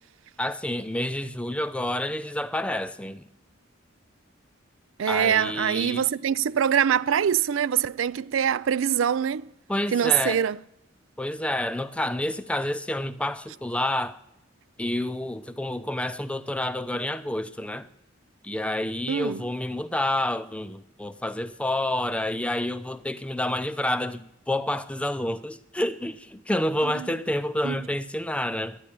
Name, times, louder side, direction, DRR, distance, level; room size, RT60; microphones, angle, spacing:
voice 1, 0.4-3.3 5.1-6.0 9.7-10.4 11.2-14.2 14.8-17.9 18.4-28.8, left 1 dB, 5° left, 0.5 m, -29 dB
voice 2, 5.0-9.5 9.9-10.6 19.1-19.4 26.9-27.1 27.6-27.8, right 8 dB, 85° right, 0.4 m, -24 dB
10.5 x 8.8 x 9.9 m
head